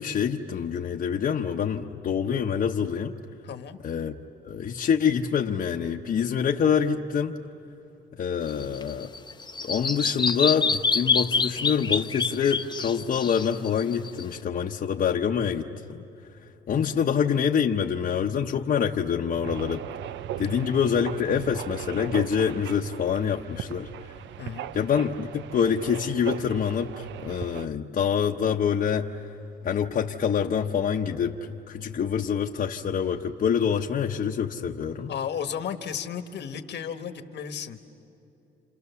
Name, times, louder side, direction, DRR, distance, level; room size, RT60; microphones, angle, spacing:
voice 1, 0.0-3.1 3.8-4.1 4.4-7.3 8.2-9.1 9.6-16.0 16.7-19.8 20.4-23.9 24.7-29.1 29.6-35.1, left 7 dB, 50° left, 0 dB, 1.0 m, -26 dB
voice 2, 3.4-3.8 16.7-17.0 24.4-24.7 35.1-37.8, left 8 dB, 65° left, 9 dB, 1.4 m, -34 dB
Bird vocalization bird call bird song, 8.5-14.4, left 5 dB, 25° left, 0.8 m, -27 dB
sound 1, 19.4-27.7, right 12 dB, 75° right, 0.5 m, -38 dB
29.5 x 27.5 x 7.0 m, 3.0 s
cardioid pair, 95°, 19 cm